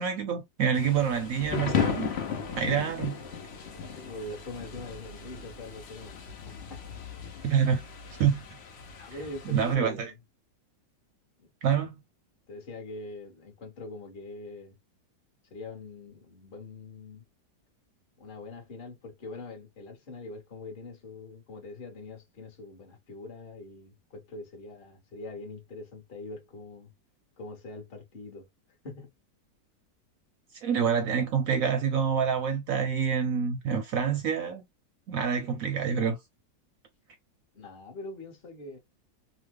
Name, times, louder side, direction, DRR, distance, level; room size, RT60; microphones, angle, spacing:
voice 1, 0.0-2.1 2.6-3.2 7.4-7.8 8.2-8.4 9.5-10.1 11.6-12.0 30.6-34.6 35.1-36.2, right 7 dB, 70° right, 0.8 m, -27 dB
Thunder / Rain, 0.7-9.7, left 7 dB, 90° left, 0.5 m, -35 dB
voice 2, 3.9-6.9 9.0-10.2 12.5-14.7 15.5-17.2 18.2-26.9 27.4-28.5 28.8-29.1 37.5-38.8, left 2 dB, 40° left, 0.9 m, -43 dB
3.0 x 2.1 x 3.2 m
omnidirectional pair, 1.9 m